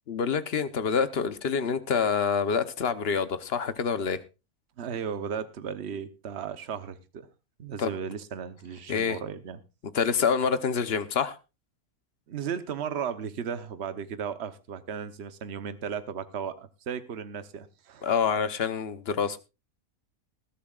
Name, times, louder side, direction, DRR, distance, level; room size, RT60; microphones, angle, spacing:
voice 1, 0.1-4.2 7.8-7.9 8.9-9.2 9.9-11.4 18.0-19.4, left 6 dB, 50° left, 12 dB, 1.0 m, -27 dB
voice 2, 4.8-7.3 7.6-9.6 12.3-18.1, right 7 dB, 50° right, 11 dB, 1.1 m, -35 dB
20.0 x 12.5 x 2.4 m, 0.28 s
omnidirectional pair, 1.6 m